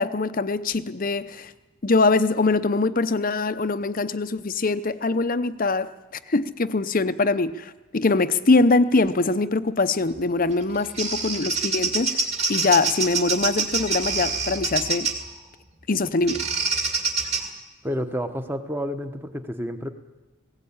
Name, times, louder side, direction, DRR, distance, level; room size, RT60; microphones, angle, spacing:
voice 1, 0.0-1.5 1.8-5.9 6.3-12.2 12.5-15.1 15.9-16.4, left 3 dB, 40° left, 12 dB, 0.7 m, -23 dB
Bird vocalization bird call bird song, 10.5-15.3 16.3-17.4, right 4 dB, 30° right, 2.2 m, -26 dB
voice 2, 17.8-19.9, equal, 10° right, 8 dB, 1.1 m, -29 dB
18.5 x 17.5 x 8.8 m, 1.1 s
head